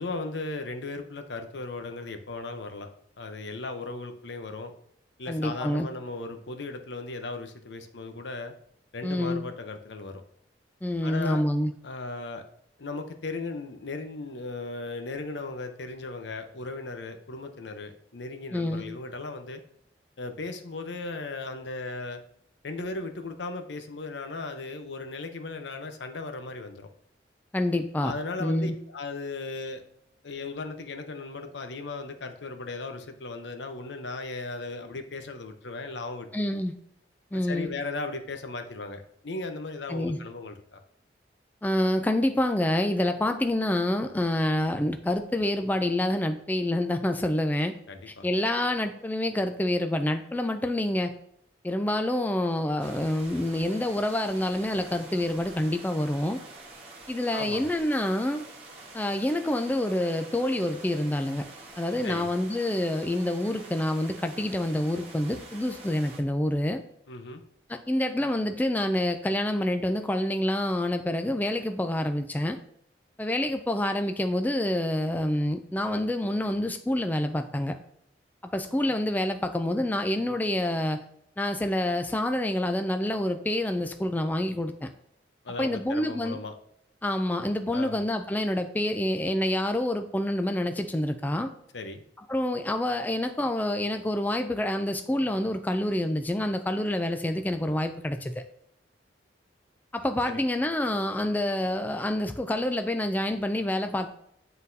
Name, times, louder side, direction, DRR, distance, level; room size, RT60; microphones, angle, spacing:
voice 1, 0.0-2.9 3.2-4.7 5.2-8.5 8.9-10.2 11.0-11.4 11.8-12.4 12.8-19.6 20.2-22.2 22.6-26.9 28.0-29.8 30.2-36.3 37.3-40.8 47.9-48.3 57.3-57.7 62.0-62.3 67.1-67.4 85.4-86.5 87.7-88.0 91.7-92.0 100.2-100.4, left 3 dB, 75° left, 6 dB, 0.7 m, -36 dB
voice 2, 5.3-5.9 9.0-9.4 10.8-11.7 18.5-18.8 27.5-28.1 28.4-28.7 36.3-36.7 37.3-37.7 39.9-40.2 41.6-47.7 48.1-51.1 51.6-56.4 57.1-58.4 58.9-61.4 61.8-66.8 67.7-72.6 73.2-77.8 78.4-81.0 81.4-84.9 85.6-86.4 87.0-91.5 92.3-98.3 99.9-104.1, left 1 dB, 10° left, 7 dB, 0.3 m, -27 dB
sound 1, 52.8-66.2, right 2 dB, 35° right, 1.2 m, -47 dB
9.4 x 4.0 x 2.7 m, 0.72 s
head